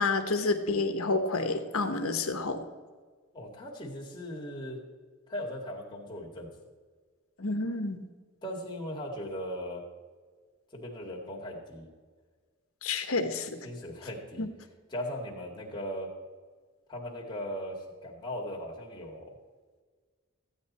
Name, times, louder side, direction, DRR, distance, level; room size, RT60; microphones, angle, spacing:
voice 1, 0.0-2.7 7.4-8.0 12.8-13.6 14.4-14.5, left 3 dB, 80° left, 7 dB, 1.2 m, -29 dB
voice 2, 3.3-4.8 5.3-6.5 8.4-9.8 10.7-11.9 13.6-14.5 14.9-16.1 16.9-19.4, equal, 20° left, -3 dB, 2.1 m, -38 dB
14.5 x 9.2 x 4.2 m, 1.5 s
head